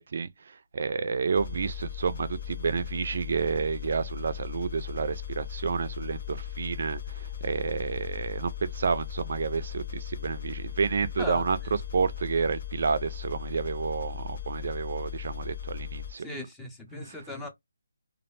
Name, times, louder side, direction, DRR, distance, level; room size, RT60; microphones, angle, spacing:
voice 1, 0.0-16.3 17.0-17.2, right 5 dB, 55° right, 0.3 m, -30 dB
sound 1, 1.3-16.1, left 10 dB, 50° left, 0.6 m, -38 dB
voice 2, 16.2-17.5, left 2 dB, 5° left, 0.5 m, -38 dB
2.3 x 2.0 x 3.1 m
hypercardioid pair, 165°, 0 cm